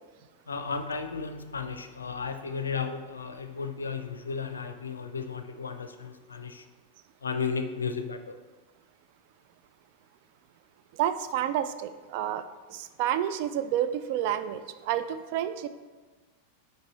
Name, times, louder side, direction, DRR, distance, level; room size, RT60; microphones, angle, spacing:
voice 1, 0.5-6.6 7.2-8.4, left 5 dB, 75° left, 8 dB, 0.4 m, -34 dB
voice 2, 11.0-15.7, right 11 dB, 45° right, 11 dB, 0.3 m, -30 dB
5.3 x 4.4 x 4.1 m, 1.4 s
figure-of-eight pair, 90°, 0 cm